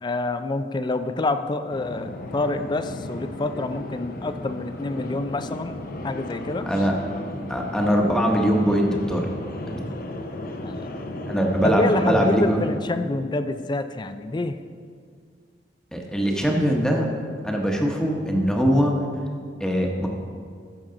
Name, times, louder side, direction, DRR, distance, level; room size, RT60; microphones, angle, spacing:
voice 1, 0.0-6.7 10.6-10.9 11.6-14.6, left 2 dB, 25° left, 10 dB, 0.4 m, -27 dB
sound 1, 1.7-12.8, left 1 dB, 55° left, 0.7 m, -35 dB
voice 2, 7.5-9.3 9.7-9.8 11.3-12.6 15.9-17.1 17.4-18.9 19.6-20.1, equal, 5° left, 0 dB, 1.0 m, -22 dB
14.5 x 6.3 x 3.8 m, 2.1 s
head